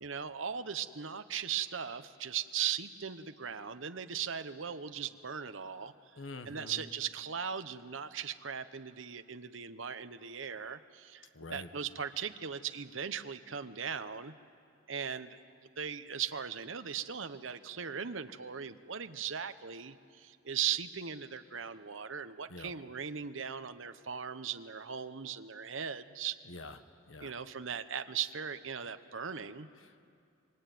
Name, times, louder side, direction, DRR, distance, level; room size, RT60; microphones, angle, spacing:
voice 1, 0.0-5.9 6.5-14.3 14.9-15.3 15.8-26.4 27.2-29.7, right 8 dB, 70° right, 10 dB, 1.0 m, -38 dB
voice 2, 6.2-6.8 11.3-11.7 22.5-22.7 26.4-26.8 27.1-27.3 29.8-30.0, left 2 dB, 75° left, 9 dB, 1.4 m, -46 dB
25.5 x 23.5 x 9.3 m, 2.4 s
head